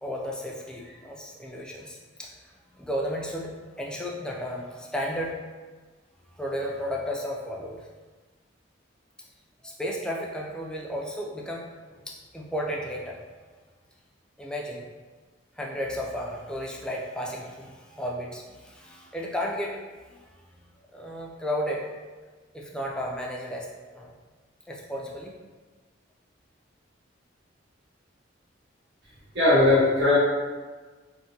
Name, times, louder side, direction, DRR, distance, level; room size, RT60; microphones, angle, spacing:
voice 1, 0.0-5.5 6.3-7.9 9.6-13.2 13.5-13.6 14.4-14.8 15.5-19.8 20.1-21.9 22.2-24.2 24.7-25.3, equal, 5° left, -2 dB, 0.3 m, -34 dB
voice 2, 29.3-30.2, left 2 dB, 65° right, -8 dB, 1.2 m, -19 dB
3.5 x 2.1 x 2.7 m, 1.3 s
head